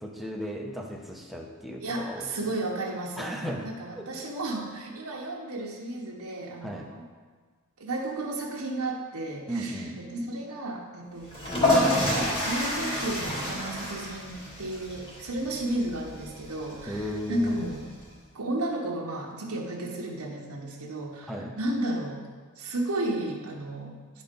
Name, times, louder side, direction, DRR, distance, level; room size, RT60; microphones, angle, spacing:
voice 1, 0.0-2.3 3.2-4.1 6.6-6.9 9.5-10.0 16.9-17.5 21.3-21.5, equal, ahead, 0 dB, 0.8 m, -35 dB
voice 2, 1.8-7.1 7.8-17.8 18.3-22.2 22.6-24.2, right 1 dB, 85° right, -2 dB, 1.1 m, -33 dB
sound 1, 11.2-18.1, left 1 dB, 25° left, 2.4 m, -29 dB
10.5 x 4.3 x 5.2 m, 1.5 s
head